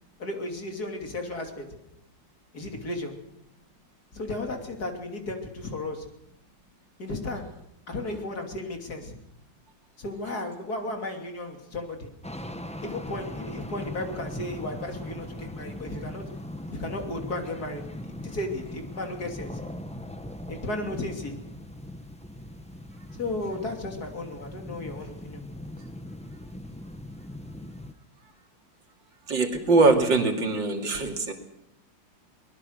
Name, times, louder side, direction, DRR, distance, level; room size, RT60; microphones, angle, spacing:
voice 1, 0.2-1.7 2.5-3.1 4.1-6.1 7.0-7.5 7.9-9.1 10.0-12.1 12.8-16.2 16.7-19.6 20.5-21.4 23.1-25.4, left 2 dB, 55° left, 3 dB, 3.4 m, -34 dB
sound 1, 12.2-27.9, left 1 dB, 5° left, 0.8 m, -40 dB
voice 2, 29.3-31.3, right 3 dB, 75° right, 3 dB, 3.4 m, -22 dB
23.5 x 20.5 x 6.6 m, 0.81 s
omnidirectional pair, 2.0 m